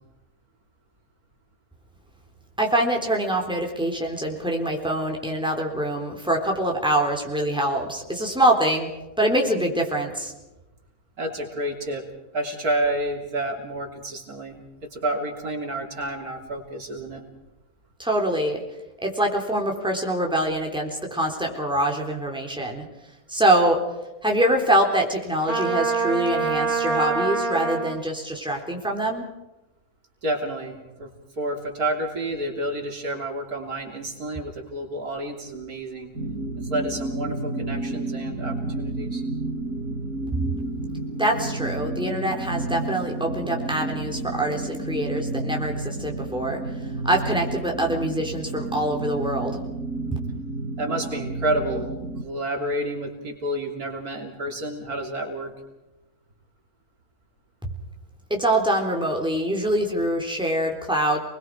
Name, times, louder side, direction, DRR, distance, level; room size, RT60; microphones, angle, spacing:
voice 1, 2.6-8.9 9.2-10.3 18.0-18.6 19.0-22.8 23.3-23.8 24.2-29.2 41.2-46.6 47.0-49.6 57.6-57.7 58.3-61.2, right 1 dB, 5° right, 0 dB, 3.7 m, -24 dB
voice 2, 11.2-12.1 12.3-14.6 14.9-17.2 30.2-31.1 31.4-36.1 36.6-39.2 50.8-51.9 52.2-55.5, right 1 dB, 85° right, 1 dB, 3.9 m, -29 dB
Trumpet, 25.5-28.0, right 4 dB, 35° right, 2.5 m, -25 dB
sound 1, 36.1-52.2, right 2 dB, 70° right, 3.7 m, -31 dB
29.5 x 21.0 x 4.8 m, 1.0 s
omnidirectional pair, 1.6 m